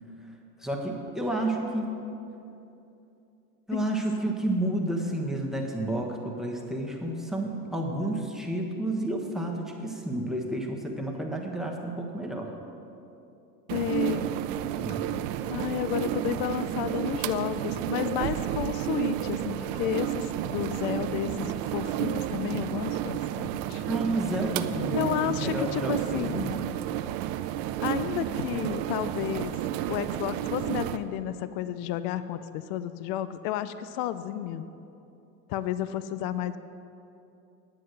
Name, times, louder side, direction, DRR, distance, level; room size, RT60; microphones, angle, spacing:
voice 1, 0.6-1.9 3.7-12.5 14.7-15.1 23.9-26.5, right 1 dB, ahead, 1 dB, 1.2 m, -31 dB
voice 2, 13.7-14.3 15.5-23.8 24.9-26.6 27.8-29.5 29.9-34.6 35.5-36.6, left 11 dB, 50° left, 13 dB, 0.5 m, -32 dB
sound 1, 13.7-31.0, right 12 dB, 55° right, 0.6 m, -31 dB
9.6 x 7.6 x 6.5 m, 2.8 s
supercardioid pair, 115°, 48 cm